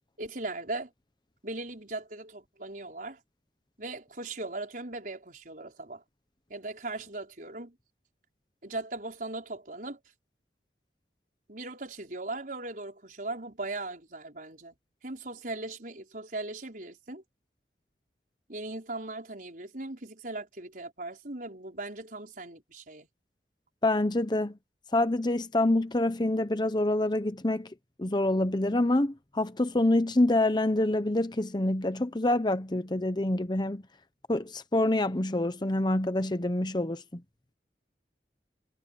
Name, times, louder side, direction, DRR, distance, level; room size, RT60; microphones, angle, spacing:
voice 1, 0.2-0.9 1.4-3.2 3.8-6.0 6.5-7.8 8.6-10.0 11.5-14.8 15.0-17.2 18.5-23.1, right 2 dB, 50° right, 5.4 m, -38 dB
voice 2, 23.8-24.6 24.9-27.7 28.0-33.8 34.3-37.2, left 1 dB, 25° left, 0.9 m, -26 dB
head